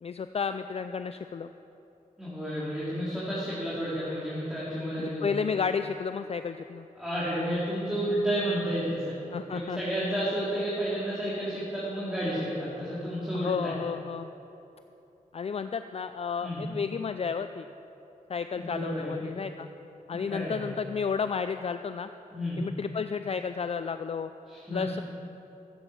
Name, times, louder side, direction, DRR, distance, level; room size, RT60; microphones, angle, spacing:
voice 1, 0.0-1.5 5.0-6.9 9.3-9.8 13.3-14.3 15.3-17.7 18.3-19.7 20.1-22.1 22.6-24.3 24.7-25.0, left 6 dB, 45° left, 10 dB, 0.4 m, -32 dB
voice 2, 2.2-5.3 7.0-9.2 9.5-13.7 16.4-16.6 18.6-19.3 20.1-20.7 22.3-22.6 24.5-25.0, equal, 5° right, -10 dB, 3.8 m, -31 dB
13.5 x 8.9 x 7.3 m, 3.0 s
cardioid pair, 70°, 15 cm